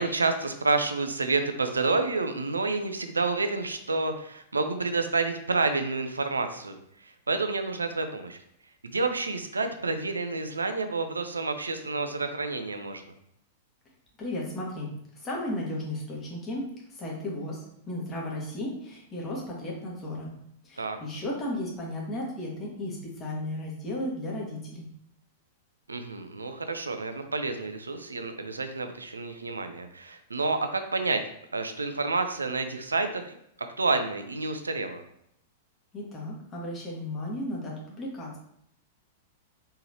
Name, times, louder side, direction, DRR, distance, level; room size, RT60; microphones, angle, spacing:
voice 1, 0.0-8.4 8.8-13.1 20.8-21.0 25.9-31.2 31.5-35.0, right 3 dB, 80° right, 8 dB, 0.5 m, -29 dB
voice 2, 14.2-17.6 17.9-20.3 20.6-24.9 35.9-38.4, left 1 dB, 25° left, -3 dB, 1.7 m, -34 dB
4.3 x 3.8 x 2.9 m, 0.72 s
figure-of-eight pair, 100°, 0 cm